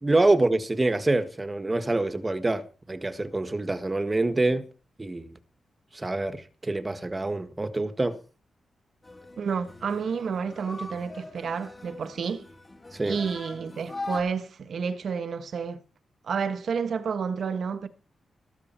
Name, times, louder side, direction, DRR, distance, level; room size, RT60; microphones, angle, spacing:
voice 1, 0.0-4.6 5.0-5.4 5.9-8.2 12.9-13.2, right 2 dB, 20° right, 1.6 m, -26 dB
sound 1, 9.0-14.2, left 2 dB, 20° left, 3.3 m, -41 dB
voice 2, 9.4-12.4 13.0-15.8 16.2-17.9, right 6 dB, 65° right, 1.4 m, -30 dB
14.0 x 13.0 x 4.5 m
wide cardioid pair, 115°, 0 cm